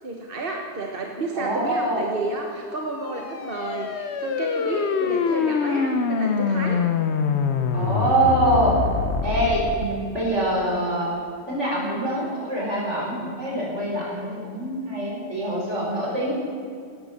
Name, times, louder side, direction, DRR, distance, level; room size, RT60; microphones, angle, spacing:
voice 1, 0.0-6.8, right 2 dB, 50° right, 1 dB, 1.4 m, -31 dB
voice 2, 1.3-2.0 7.7-8.8 9.2-11.1 11.5-16.3, right 1 dB, 75° right, -4 dB, 5.4 m, -24 dB
sound 1, 2.9-9.9, left 5 dB, 65° left, 1.2 m, -25 dB
17.5 x 12.0 x 6.5 m, 2.3 s
omnidirectional pair, 1.2 m